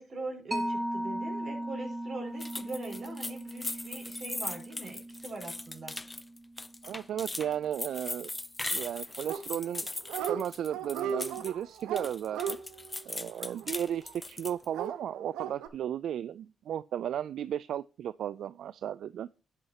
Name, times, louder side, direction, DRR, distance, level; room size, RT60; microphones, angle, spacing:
voice 1, 0.0-6.0, right 2 dB, 50° right, 5.7 m, -42 dB
Mallet percussion, 0.5-7.6, right 1 dB, 5° right, 1.8 m, -38 dB
sound 1, 2.4-11.5 11.8-14.6, left 2 dB, 20° left, 0.5 m, -39 dB
voice 2, 6.8-8.3 8.7-9.9 10.3-12.6 13.0-19.3, right 10 dB, 75° right, 0.3 m, -35 dB
Dog, 9.3-9.8 10.0-10.4 10.7-14.1 14.7-15.7, right 8 dB, 90° right, 1.0 m, -36 dB
11.0 x 8.2 x 2.8 m
supercardioid pair, 65°, 0 cm